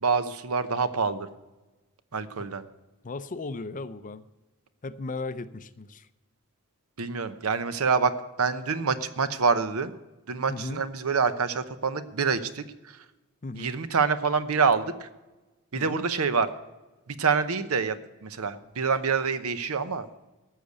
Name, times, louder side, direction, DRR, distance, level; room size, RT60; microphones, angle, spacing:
voice 1, 0.0-1.3 2.1-2.6 7.0-8.1 8.4-9.9 10.3-13.0 13.5-15.1 15.7-16.5 17.1-20.1, right 5 dB, 70° right, 12 dB, 0.8 m, -26 dB
voice 2, 3.0-4.2 4.8-6.1 10.5-10.8 13.4-13.7 15.7-16.0, left 3 dB, 35° left, 13 dB, 0.5 m, -36 dB
14.0 x 6.6 x 8.2 m, 1.1 s
head